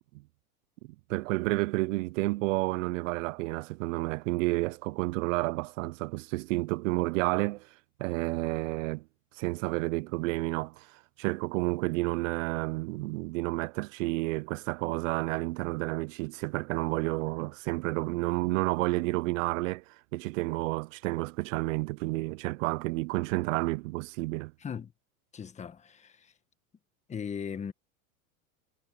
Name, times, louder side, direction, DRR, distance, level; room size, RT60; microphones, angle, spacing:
voice 1, 1.1-7.7 8.0-9.0 9.4-10.9 11.2-19.8 20.1-24.5, right 22 dB, 65° right, 0.5 m, -30 dB
voice 2, 24.6-24.9 25.3-26.3 27.1-27.7, left 7 dB, 15° left, 1.4 m, -38 dB
supercardioid pair, 140°, 42 cm